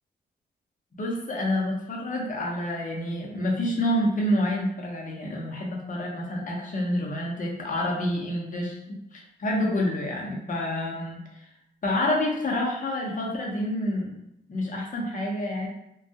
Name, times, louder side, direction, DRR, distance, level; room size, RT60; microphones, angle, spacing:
voice 1, 1.0-11.4 11.8-14.2 14.5-15.7, left 1 dB, 40° left, -1 dB, 0.8 m, -28 dB
2.3 x 2.2 x 2.7 m, 0.81 s
supercardioid pair, 60°, 20 cm